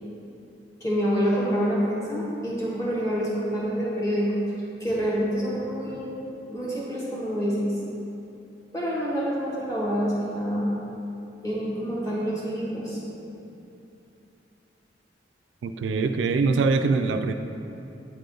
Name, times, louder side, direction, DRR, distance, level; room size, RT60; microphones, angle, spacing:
voice 1, 0.8-4.3 4.8-7.7 8.7-10.7 11.4-13.0, equal, 20° left, -7 dB, 1.3 m, -27 dB
voice 2, 15.6-17.3, right 4 dB, 85° right, 7 dB, 0.3 m, -23 dB
8.4 x 3.8 x 3.4 m, 2.7 s
head